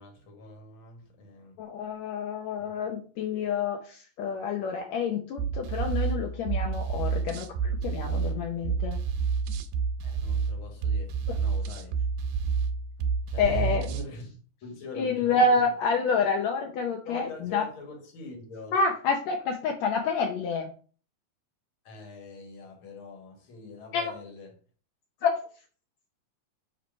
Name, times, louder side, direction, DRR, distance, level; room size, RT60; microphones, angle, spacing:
voice 1, 0.0-1.6 10.0-12.0 13.2-14.3 14.6-15.6 17.1-18.8 21.8-24.6, left 3 dB, 45° left, 1.9 m, -43 dB
voice 2, 1.6-9.0 13.4-13.9 15.0-17.6 18.7-20.7 23.9-24.1 25.2-25.3, left 4 dB, 80° left, 1.6 m, -28 dB
sound 1, 5.4-14.1, right 5 dB, 85° right, 2.4 m, -29 dB
7.3 x 3.3 x 5.1 m
omnidirectional pair, 4.1 m